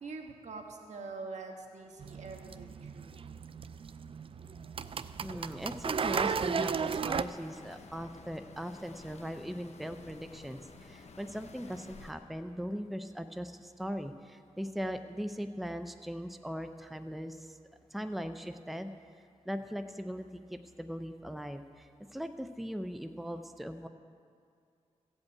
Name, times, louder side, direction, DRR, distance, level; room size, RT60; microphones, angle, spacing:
voice 1, 0.0-3.2, right 3 dB, 80° right, 2 dB, 1.5 m, -44 dB
sound 1, 2.0-7.2, right 6 dB, 50° right, 0.4 m, -35 dB
voice 2, 5.2-17.6 17.9-18.9 19.4-23.9, equal, ahead, 8 dB, 0.6 m, -39 dB
sound 2, 7.0-12.1, left 3 dB, 65° left, 1.0 m, -52 dB
16.0 x 5.4 x 8.4 m, 2.4 s
cardioid pair, 70°, 12 cm